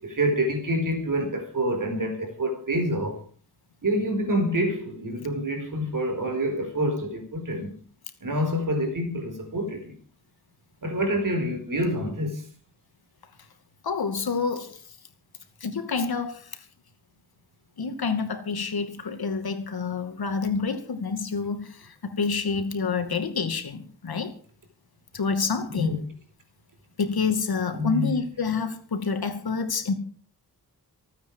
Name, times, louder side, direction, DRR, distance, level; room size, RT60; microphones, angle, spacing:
voice 1, 0.0-3.2 3.8-7.7 8.2-10.0 10.8-12.4 25.7-26.0 27.7-28.1, equal, 55° right, 4.5 m, -27 dB
voice 2, 13.8-14.8 15.6-16.4 17.8-24.3 25.1-26.0 27.0-29.9, left 5 dB, 70° left, 2.5 m, -28 dB
27.5 x 9.2 x 4.9 m
wide cardioid pair, 100°, 39 cm